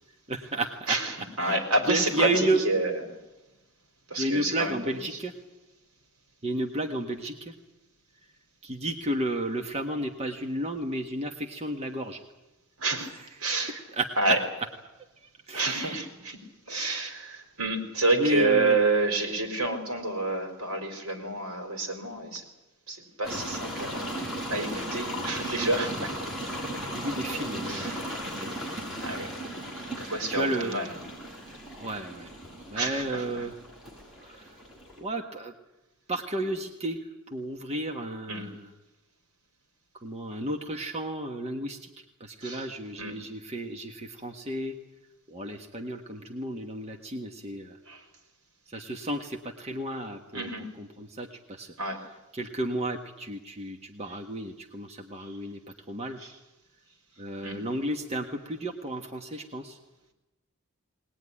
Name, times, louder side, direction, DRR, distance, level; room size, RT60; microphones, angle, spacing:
voice 1, 0.3-1.0 1.4-1.6 1.9-2.6 4.2-5.3 6.4-7.5 8.6-12.2 14.0-14.3 15.2-16.0 18.1-18.8 24.7-24.9 26.9-28.0 28.2-28.5 30.0-30.7 31.8-32.3 32.7-33.5 34.3-34.4 35.0-35.5 36.1-37.0 37.3-38.6 40.0-41.9 42.2-44.7 45.3-47.8 48.7-50.5 50.8-51.7 52.3-55.6 55.9-56.2 57.2-59.8, right 1 dB, 30° right, 2 dB, 1.5 m, -32 dB
voice 2, 0.9-2.9 4.1-5.2 12.8-13.1 13.4-13.8 14.2-14.4 15.5-16.4 16.7-22.5 22.9-26.1 27.6-28.1 29.0-29.4 29.8-31.0 32.7-33.5 38.3-38.5 42.4-42.7 43.0-43.2 47.9-48.0 50.3-50.7 51.8-52.0 54.1-54.2 55.2-55.4 56.2-56.3 57.4-57.6, right 2 dB, 75° right, 5 dB, 4.5 m, -29 dB
sound 1, 23.2-35.0, equal, ahead, 7.2 m, -36 dB
21.0 x 20.0 x 9.9 m, 1.0 s
head